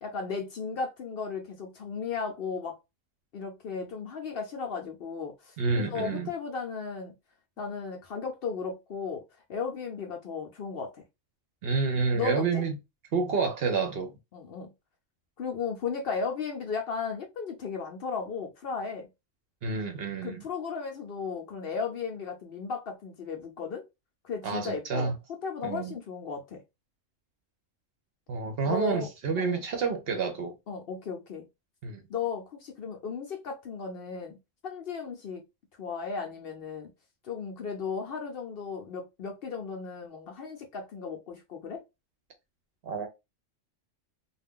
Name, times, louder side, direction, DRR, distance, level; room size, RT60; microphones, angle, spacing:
voice 1, 0.0-2.8 3.3-7.1 7.6-9.2 9.5-11.0 12.1-12.6 14.3-14.7 15.4-19.1 20.2-23.8 24.2-25.1 25.4-26.6 28.6-29.1 29.4-29.6 30.7-31.5 32.1-34.4 34.6-35.4 35.8-36.9 37.2-41.8, left 5 dB, 60° left, 0.7 m, -35 dB
voice 2, 5.6-6.3 11.6-12.8 13.1-14.1 19.6-20.4 24.4-25.1 25.6-25.9 28.3-30.5 31.8-32.0 42.8-43.1, right 4 dB, 60° right, 0.8 m, -29 dB
2.4 x 2.2 x 3.5 m
omnidirectional pair, 1.3 m